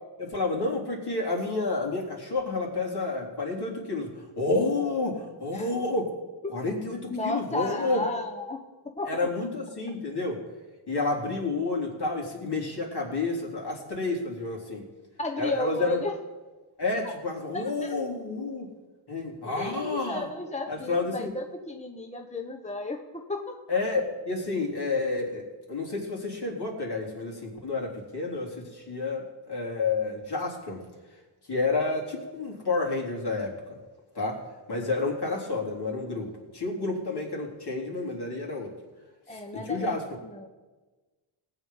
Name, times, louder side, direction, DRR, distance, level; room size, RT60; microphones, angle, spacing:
voice 1, 0.2-6.1 6.5-8.0 9.1-10.4 10.9-14.9 15.4-16.0 16.8-18.7 19.1-20.3 20.7-21.3 23.7-30.8 31.5-33.5 34.2-34.4 34.7-38.7 39.3-40.0, left 3 dB, 50° left, -1 dB, 3.7 m, -30 dB
voice 2, 7.1-9.3 15.2-16.2 17.5-17.9 19.6-23.6 39.3-40.5, left 2 dB, 15° left, 3 dB, 1.1 m, -34 dB
18.5 x 8.1 x 5.6 m, 1.3 s
cardioid pair, 75°, 50 cm